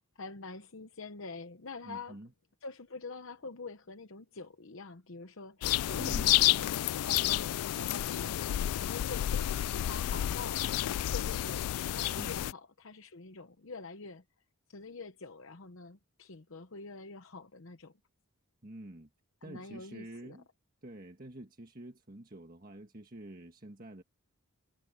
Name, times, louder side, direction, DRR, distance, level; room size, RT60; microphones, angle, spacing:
voice 1, 0.0-2.2 2.6-10.7 11.1-11.7 11.9-14.2 14.7-17.9 19.4-20.4, left 3 dB, 60° left, 0.9 m, -46 dB
voice 2, 1.8-2.3 6.0-6.5 12.2-12.5 18.6-19.1 19.4-20.4 20.8-24.0, right 1 dB, 40° right, 1.7 m, -47 dB
sound 1, 5.6-12.5, left 13 dB, 85° left, 0.3 m, -30 dB
head